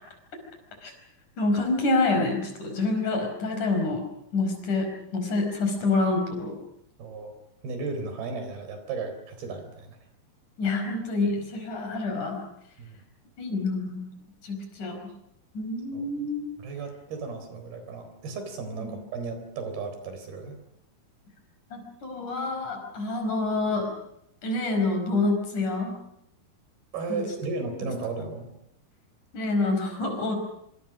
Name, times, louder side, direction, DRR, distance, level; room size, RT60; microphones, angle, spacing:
voice 1, 1.4-4.0 4.3-6.6 10.6-12.4 13.4-14.0 14.4-15.0 15.5-16.4 21.7-23.9 24.4-25.9 27.1-27.2 29.3-30.4, left 3 dB, 55° left, 4 dB, 6.5 m, -27 dB
voice 2, 7.0-7.3 7.6-10.0 12.8-13.0 15.9-16.1 16.6-20.6 26.9-28.5, right 4 dB, 80° right, 8 dB, 5.8 m, -35 dB
26.0 x 25.5 x 6.3 m, 0.76 s
omnidirectional pair, 4.3 m